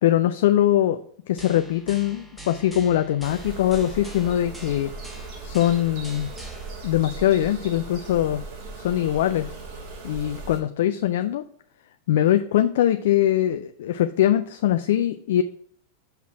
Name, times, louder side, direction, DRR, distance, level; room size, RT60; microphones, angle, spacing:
voice 1, 0.0-1.0 1.3-4.9 5.4-6.3 6.8-8.4 8.8-9.5 10.0-11.4 12.1-15.4, left 12 dB, 55° left, 10 dB, 0.3 m, -22 dB
sound 1, 1.4-6.7, right 2 dB, ahead, 1.1 m, -43 dB
sound 2, 3.2-10.6, right 3 dB, 45° right, 2.3 m, -38 dB
5.8 x 5.5 x 4.5 m, 0.63 s
figure-of-eight pair, 90°, 0 cm